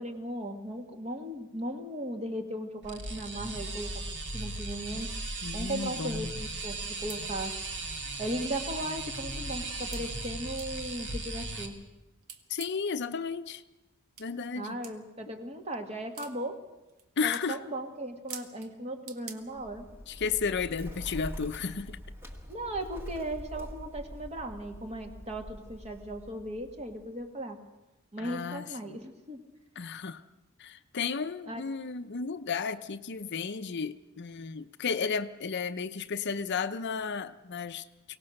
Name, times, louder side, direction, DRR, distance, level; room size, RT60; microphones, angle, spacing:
voice 1, 0.0-4.0 4.3-5.1 5.5-7.5 8.2-11.8 14.6-16.6 17.2-19.9 22.5-27.6 28.1-29.4 31.5-31.6, right 1 dB, 30° right, 5 dB, 2.0 m, -37 dB
sound 1, 2.8-11.7, right 2 dB, 55° right, 2.3 m, -37 dB
voice 2, 5.4-6.3 12.5-13.6 14.2-14.8 17.2-17.6 20.1-22.0 28.2-29.0 29.8-30.2 30.6-37.8, left 5 dB, 55° left, 11 dB, 0.7 m, -33 dB
sound 2, 6.8-6.9 7.1-7.2 8.1-8.2 8.7-8.8 9.9-10.1 10.6-10.7 12.2-12.9 14.2-14.3 14.8-15.0 16.1-16.3 16.9-17.0 17.3-17.5 18.3-18.7 19.1-19.4, right 7 dB, 75° right, 1.6 m, -44 dB
Bird, 19.5-27.3, equal, 10° right, 1.8 m, -45 dB
23.5 x 18.0 x 6.5 m, 1.0 s
head